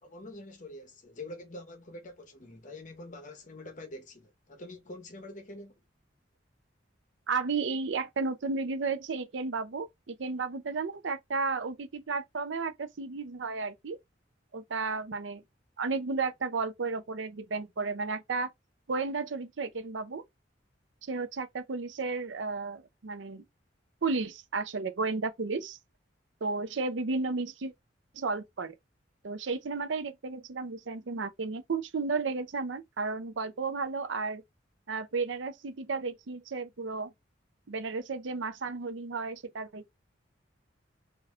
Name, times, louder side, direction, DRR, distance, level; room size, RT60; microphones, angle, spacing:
voice 1, 0.0-5.8, left 1 dB, 40° left, 1.0 m, -45 dB
voice 2, 7.3-14.0 14.5-15.4 15.8-18.5 18.9-20.2 21.1-23.4 24.0-25.8 26.4-27.7 28.1-28.7 29.2-34.4 34.9-37.1 37.7-39.9, right 4 dB, 75° right, 0.6 m, -33 dB
4.1 x 2.6 x 2.5 m
head